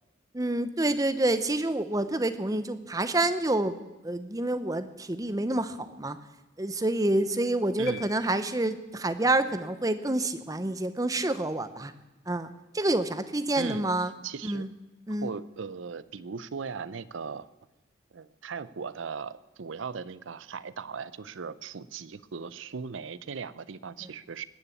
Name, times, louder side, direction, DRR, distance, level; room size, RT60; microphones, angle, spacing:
voice 1, 0.3-6.2 6.6-11.9 12.3-14.1 14.4-14.7 15.1-15.3 24.0-24.1, right 2 dB, 20° right, 11 dB, 0.7 m, -28 dB
sound 1, 7.9-9.1, left 12 dB, 50° left, 0.7 m, -46 dB
voice 2, 14.2-14.6 15.2-17.5 18.1-24.4, right 5 dB, 80° right, 17 dB, 0.6 m, -38 dB
20.0 x 7.0 x 8.4 m, 1.0 s
head